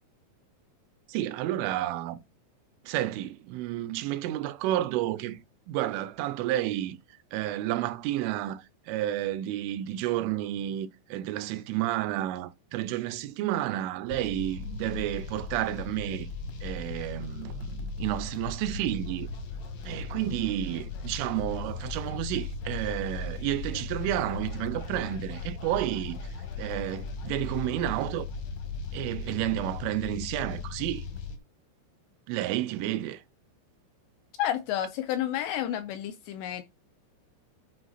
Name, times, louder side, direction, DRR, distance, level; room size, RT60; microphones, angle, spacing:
voice 1, 1.1-2.2 2.9-5.4 5.7-7.0 7.3-16.3 16.6-19.3 19.9-26.2 26.6-28.3 28.9-31.1 32.3-33.2, right 13 dB, 85° right, 3.3 m, -31 dB
sound 1, 14.1-31.4, left 4 dB, 65° left, 1.7 m, -37 dB
voice 2, 34.4-36.6, left 11 dB, 80° left, 2.6 m, -30 dB
11.5 x 4.9 x 4.1 m
omnidirectional pair, 5.6 m